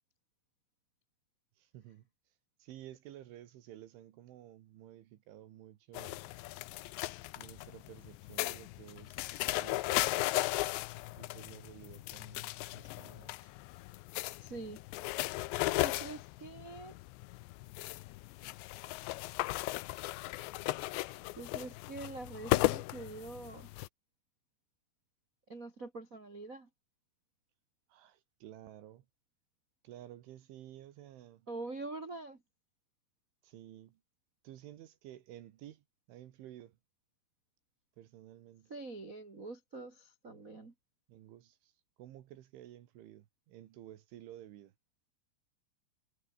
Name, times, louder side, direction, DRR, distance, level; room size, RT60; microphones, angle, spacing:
voice 1, 1.6-2.1 2.6-6.2 7.4-10.3 11.1-13.5 27.9-29.1 29.8-31.5 33.4-34.0 34.4-36.8 38.0-38.7 41.1-41.7 42.0-44.7, right 12 dB, 75° right, 4.0 m, -53 dB
sound 1, 5.9-23.9, left 19 dB, 80° left, 2.7 m, -36 dB
voice 2, 14.4-14.8 15.8-17.0 21.3-23.7 25.5-26.7 31.5-32.4 38.7-40.7, right 3 dB, 40° right, 1.2 m, -44 dB
omnidirectional pair, 5.7 m